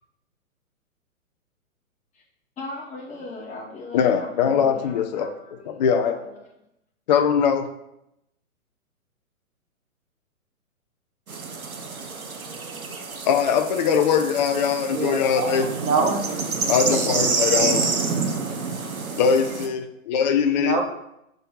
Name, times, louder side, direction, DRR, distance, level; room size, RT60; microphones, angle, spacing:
voice 1, 2.6-6.5, left 2 dB, 15° left, -4 dB, 1.9 m, -39 dB
voice 2, 3.9-5.3 5.7-6.2 7.1-7.7 13.3-15.7 16.7-17.8 19.2-20.8, left 7 dB, 30° left, 6 dB, 0.5 m, -21 dB
sound 1, 11.3-19.7, right 4 dB, 80° right, 1.1 m, -28 dB
voice 3, 14.9-16.4 16.8-16.9 20.6-20.8, right 4 dB, 10° right, 2 dB, 0.6 m, -25 dB
5.5 x 3.8 x 5.5 m, 0.82 s
figure-of-eight pair, 120°, 42 cm